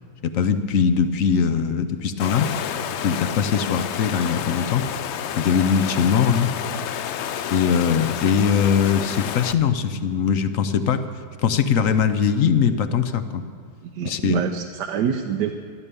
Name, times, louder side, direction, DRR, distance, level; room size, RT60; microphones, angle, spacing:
voice 1, 0.2-2.5 3.0-4.9 5.4-6.5 7.5-11.0 11.4-13.4 14.0-14.4, left 7 dB, 60° left, 10 dB, 1.0 m, -21 dB
Water, 2.2-9.5, left 9 dB, 85° left, 0.6 m, -29 dB
voice 2, 13.9-15.5, right 8 dB, 75° right, 5 dB, 1.3 m, -26 dB
12.5 x 12.5 x 6.9 m, 2.2 s
omnidirectional pair, 1.8 m